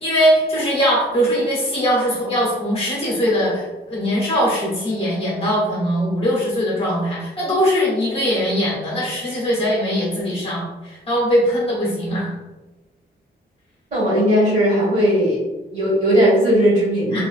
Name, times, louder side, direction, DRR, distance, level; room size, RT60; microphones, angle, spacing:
voice 1, 0.0-12.3 17.1-17.2, equal, 30° left, -5 dB, 0.8 m, -21 dB
voice 2, 13.9-15.4 15.7-17.2, equal, 45° right, -6 dB, 1.5 m, -17 dB
3.2 x 2.4 x 2.4 m, 1.1 s
wide cardioid pair, 160°, 18 cm